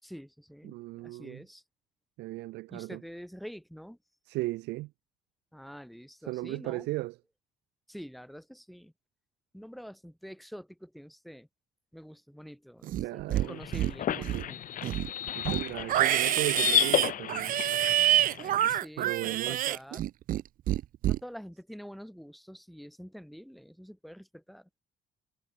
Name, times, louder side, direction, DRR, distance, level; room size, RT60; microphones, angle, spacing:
voice 1, 0.0-1.6 2.7-4.0 5.5-6.9 7.9-8.9 9.5-11.5 11.9-14.6 18.4-20.1 21.0-24.7, equal, ahead, 4.0 m, -47 dB
voice 2, 0.6-1.4 2.2-3.0 4.3-4.9 6.3-7.2 12.9-13.6 14.1-14.5 15.3-17.6 19.0-19.6, right 19 dB, 85° right, 0.9 m, -36 dB
Livestock farm animals working animals, 12.8-13.5 13.7-14.5 14.8-20.4 20.7-21.2, right 13 dB, 55° right, 0.6 m, -27 dB
sound 1, 13.3-18.8, left 10 dB, 50° left, 1.4 m, -32 dB
cardioid pair, 110°, 17 cm